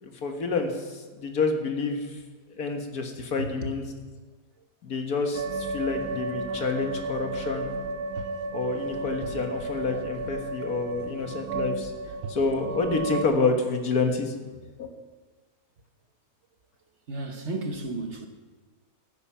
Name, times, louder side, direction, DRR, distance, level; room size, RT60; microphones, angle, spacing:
voice 1, 0.0-2.1 2.6-3.8 4.8-7.7 8.5-11.9 12.3-14.3 14.8-14.9, left 4 dB, 80° left, 4 dB, 2.0 m, -28 dB
voice 2, 3.4-3.7 17.1-18.3, right 2 dB, 50° right, 5 dB, 1.4 m, -33 dB
sound 1, 5.3-13.2, right 3 dB, 75° right, 1.2 m, -33 dB
14.5 x 9.6 x 5.8 m, 1.3 s
omnidirectional pair, 1.6 m